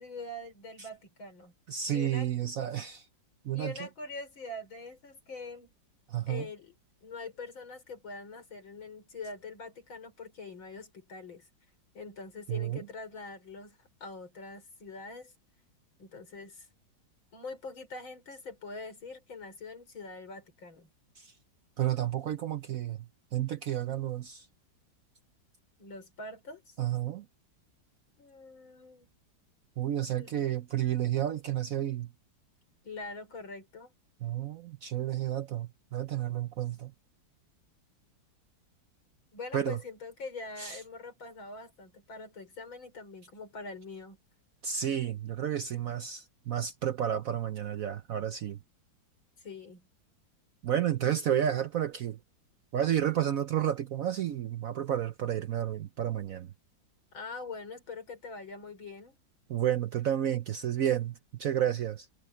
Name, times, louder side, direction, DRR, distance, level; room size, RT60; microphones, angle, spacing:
voice 1, 0.0-1.5 1.9-2.3 3.5-5.7 6.3-6.7 7.0-11.5 11.9-15.3 16.0-16.7 17.3-20.9 25.8-26.8 28.2-29.1 30.1-30.4 32.8-33.9 39.3-44.2 49.4-49.9 57.1-59.2, left 3 dB, 85° left, 5.7 m, -44 dB
voice 2, 1.7-3.1 3.4-3.9 6.1-6.5 12.5-12.9 21.2-21.3 21.8-23.0 23.3-24.5 26.8-27.3 29.8-32.1 34.2-36.9 39.5-39.8 40.6-40.8 44.6-48.6 50.6-52.2 52.7-56.5 59.5-62.1, right 10 dB, 65° right, 0.8 m, -31 dB
omnidirectional pair, 2.1 m